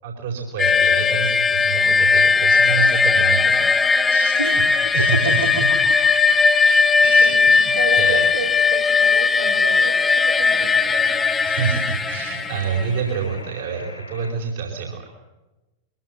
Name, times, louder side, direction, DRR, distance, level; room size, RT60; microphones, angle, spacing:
voice 1, 0.0-3.7 4.1-4.4 4.9-5.7 7.0-7.7 8.0-8.2 11.4-15.1, right 6 dB, 60° right, 0 dB, 4.7 m, -27 dB
sound 1, 0.6-13.0, left 5 dB, 15° left, 1.1 m, -18 dB
voice 2, 1.7-2.0 4.4-5.6 6.6-7.4 7.8-11.4, right 4 dB, 80° right, 0 dB, 2.9 m, -31 dB
sound 2, 4.8-14.3, left 2 dB, 85° left, 6.3 m, -41 dB
23.0 x 17.0 x 9.6 m, 1.1 s
figure-of-eight pair, 90°, 0 cm